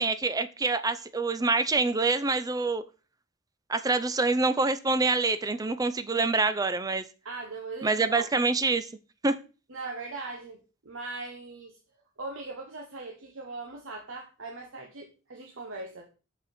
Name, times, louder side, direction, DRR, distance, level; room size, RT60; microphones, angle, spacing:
voice 1, 0.0-2.8 3.7-7.0 7.8-8.9 9.2-9.3, right 3 dB, 20° right, 11 dB, 0.5 m, -26 dB
voice 2, 7.2-8.3 9.7-11.8 12.2-16.1, right 3 dB, 70° right, 2 dB, 1.1 m, -40 dB
6.6 x 5.4 x 4.3 m, 0.33 s
head